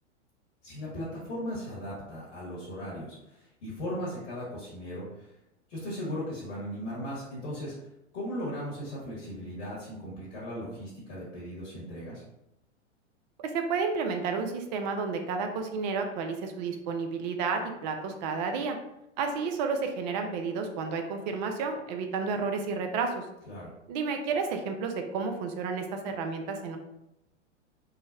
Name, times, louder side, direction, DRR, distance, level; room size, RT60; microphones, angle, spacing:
voice 1, 0.6-5.3 5.7-7.7 8.1-12.2 23.5-23.7, equal, 65° left, -7 dB, 1.3 m, -37 dB
voice 2, 13.4-18.8 19.2-23.3 23.9-26.8, right 5 dB, 40° right, 5 dB, 0.4 m, -31 dB
3.8 x 2.0 x 2.6 m, 0.85 s
hypercardioid pair, 105°, 37 cm